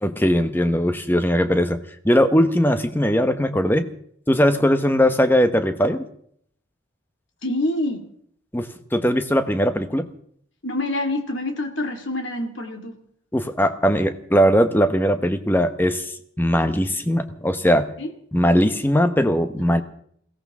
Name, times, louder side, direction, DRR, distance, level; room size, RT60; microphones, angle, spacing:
voice 1, 0.0-1.8 2.0-3.9 4.3-6.0 8.5-10.1 13.3-16.1 16.4-17.9 18.3-19.8, equal, 10° left, 9 dB, 1.0 m, -19 dB
voice 2, 7.4-8.1 10.6-13.0 18.0-18.1, left 1 dB, 65° left, 4 dB, 2.3 m, -26 dB
22.0 x 17.0 x 3.7 m, 0.63 s
head